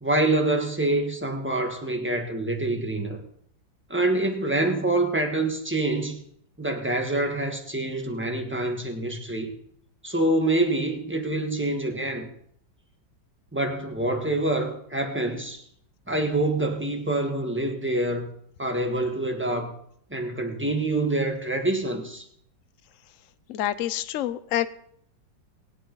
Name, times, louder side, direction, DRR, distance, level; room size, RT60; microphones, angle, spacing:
voice 1, 0.0-3.2 3.9-6.2 6.6-9.5 10.0-12.3 13.5-15.6 16.1-18.3 18.6-19.7 20.1-22.2, right 2 dB, 5° right, 3 dB, 1.2 m, -26 dB
voice 2, 23.5-24.7, left 12 dB, 65° left, 13 dB, 0.8 m, -27 dB
22.5 x 8.5 x 3.9 m, 0.70 s
omnidirectional pair, 2.0 m